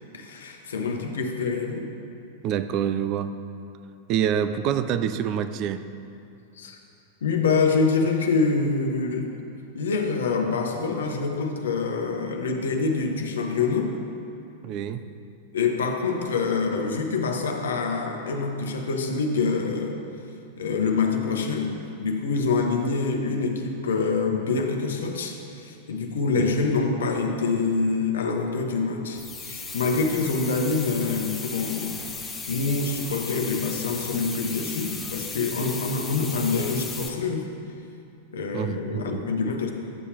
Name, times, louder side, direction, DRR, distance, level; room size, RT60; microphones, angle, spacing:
voice 1, 0.1-1.9 6.6-6.8 7.2-9.3 9.7-14.0 15.5-20.0 20.6-37.5 38.3-39.7, left 4 dB, 65° left, 3 dB, 0.9 m, -26 dB
voice 2, 2.4-3.4 4.1-5.9 14.6-15.1 26.4-26.5 38.5-39.3, right 9 dB, 40° right, 11 dB, 0.4 m, -26 dB
sound 1, 29.2-37.1, left 4 dB, 15° left, 0.8 m, -36 dB
12.0 x 8.1 x 2.9 m, 2.6 s
figure-of-eight pair, 95°, 0 cm